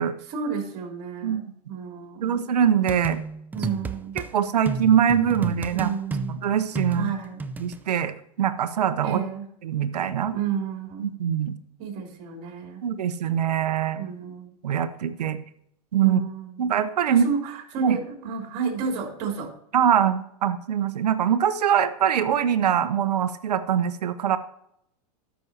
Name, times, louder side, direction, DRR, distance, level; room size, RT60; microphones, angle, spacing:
voice 1, 0.2-2.4 3.5-4.2 5.7-6.3 6.9-7.5 9.0-9.5 10.3-11.1 11.8-12.9 14.0-14.5 16.0-19.5, right 6 dB, 50° right, 2 dB, 3.2 m, -31 dB
voice 2, 2.2-3.2 4.3-5.9 6.3-7.1 7.6-9.2 9.6-10.4 11.0-11.6 12.8-14.0 14.6-15.4 15.9-16.2 16.6-17.3 17.8-18.0 19.7-24.4, right 8 dB, 85° right, 12 dB, 0.9 m, -23 dB
sound 1, 2.9-4.3 4.7-7.8, right 3 dB, 10° right, 0.4 m, -32 dB
13.5 x 6.2 x 2.8 m, 0.73 s
hypercardioid pair, 125°, 20 cm